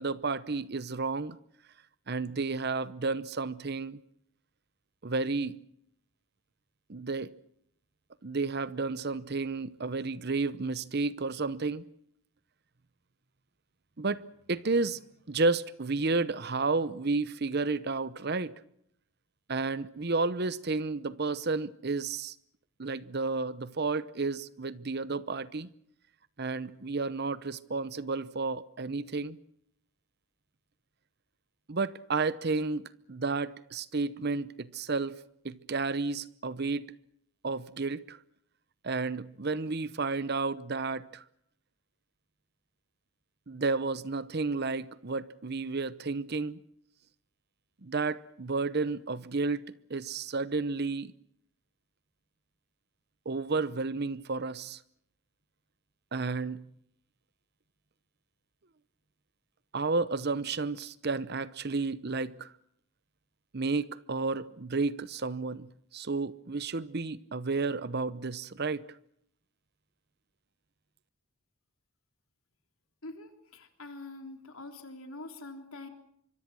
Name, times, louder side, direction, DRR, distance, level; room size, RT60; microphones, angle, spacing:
voice 1, 0.0-1.4 2.1-4.0 5.0-5.6 6.9-7.3 8.2-11.8 14.0-14.2 14.5-15.0 15.3-18.5 19.5-22.3 22.8-25.7 26.4-29.4 31.7-35.2 35.4-36.9 37.4-38.2 38.8-41.2 43.5-46.6 47.8-51.1 53.3-54.8 56.1-56.6 59.7-62.5 63.5-68.8, right 3 dB, 50° right, 0.8 m, -32 dB
voice 2, 73.0-75.9, left 2 dB, 80° left, 3.5 m, -45 dB
25.5 x 23.5 x 6.3 m
head